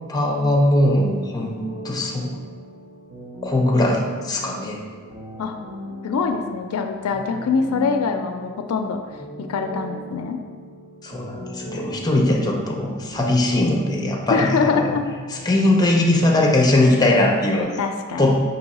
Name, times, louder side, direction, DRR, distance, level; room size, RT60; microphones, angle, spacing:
voice 1, 0.1-1.5 1.8-2.3 3.4-4.8 11.0-15.0 15.4-17.8 18.2-18.4, left 1 dB, 20° left, 0 dB, 0.5 m, -20 dB
sound 1, 1.3-17.6, equal, 75° right, 1.1 m, -38 dB
voice 2, 6.0-9.0 9.4-10.4 14.3-15.1 17.8-18.3, left 5 dB, 85° left, 6 dB, 0.4 m, -24 dB
4.6 x 2.8 x 4.1 m, 1.6 s
head